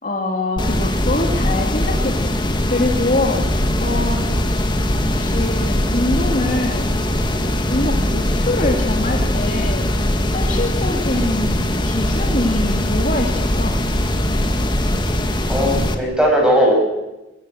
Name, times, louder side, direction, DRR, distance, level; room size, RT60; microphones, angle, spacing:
voice 1, 0.0-2.3 2.6-4.2 5.1-6.9 7.7-9.9 10.2-13.8, left 2 dB, 40° left, 1 dB, 2.7 m, -24 dB
sound 1, 0.6-15.9, left 1 dB, 25° left, 1.9 m, -20 dB
voice 2, 15.5-16.7, equal, 5° right, -1 dB, 8.0 m, -17 dB
22.5 x 21.0 x 7.8 m, 0.98 s
head